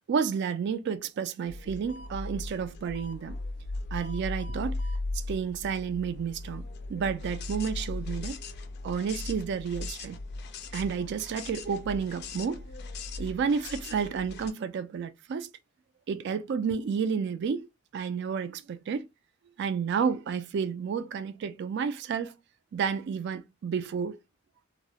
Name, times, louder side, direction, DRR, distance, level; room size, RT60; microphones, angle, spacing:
voice 1, 0.1-3.4 3.9-4.8 5.1-6.6 6.9-8.4 8.8-10.2 10.7-12.6 13.2-15.5 16.1-17.7 17.9-19.1 19.6-22.4 22.7-24.2, right 6 dB, 60° right, 0.3 m, -31 dB
sound 1, 1.5-14.5, left 2 dB, 55° left, 0.3 m, -38 dB
2.3 x 2.0 x 2.8 m
head